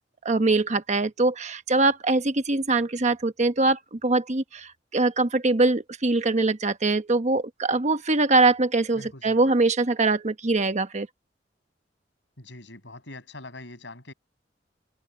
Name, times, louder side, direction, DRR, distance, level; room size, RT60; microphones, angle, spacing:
voice 1, 0.2-11.1, right 3 dB, 40° right, 1.1 m, -23 dB
voice 2, 8.9-9.5 12.4-14.1, left 2 dB, 80° left, 6.5 m, -43 dB
head